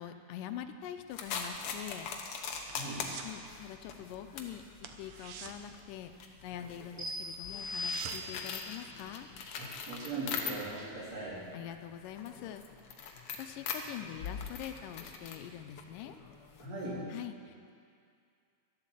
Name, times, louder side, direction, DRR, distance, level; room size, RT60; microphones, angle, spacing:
voice 1, 0.0-2.1 3.2-4.6 5.0-6.1 6.4-9.3 11.5-12.6 13.4-16.2 17.1-17.7, left 10 dB, 80° left, 8 dB, 2.2 m, -44 dB
sound 1, 1.1-10.9 11.2-16.6, left 6 dB, 65° left, 1.5 m, -42 dB
sound 2, 1.8-3.4 3.7-4.0 4.3-4.4 4.8-6.6 7.0-7.1 7.3-8.4 8.8-8.9, right 7 dB, 70° right, 1.6 m, -47 dB
voice 2, 2.7-3.2 9.6-11.5 16.6-17.1, right 2 dB, 50° right, -7 dB, 4.5 m, -40 dB
sound 3, 7.0-8.7, left 2 dB, 10° right, 4.2 m, -39 dB
12.5 x 11.5 x 7.5 m, 2.3 s
omnidirectional pair, 3.8 m